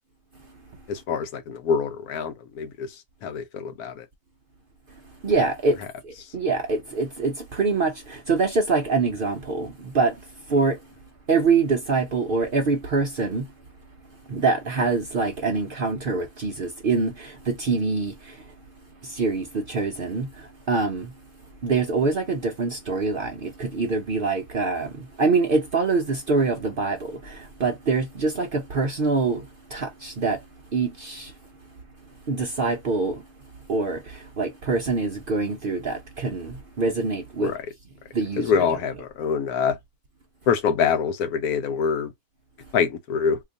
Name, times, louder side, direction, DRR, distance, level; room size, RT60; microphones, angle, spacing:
voice 1, 0.9-3.0 3.2-4.1 6.2-6.3 37.4-37.7 38.4-39.8 40.5-42.1 42.7-43.4, left 6 dB, 85° left, 1.2 m, -25 dB
voice 2, 5.2-5.8 6.3-10.1 10.5-10.8 11.3-13.4 14.3-18.1 19.2-20.3 20.7-21.1 21.6-24.9 25.2-27.1 27.6-29.4 29.7-30.4 30.7-31.3 32.3-33.2 33.7-34.0 34.4-37.5 38.1-38.6, right 4 dB, 55° right, 0.6 m, -24 dB
2.9 x 2.4 x 3.8 m
omnidirectional pair, 1.5 m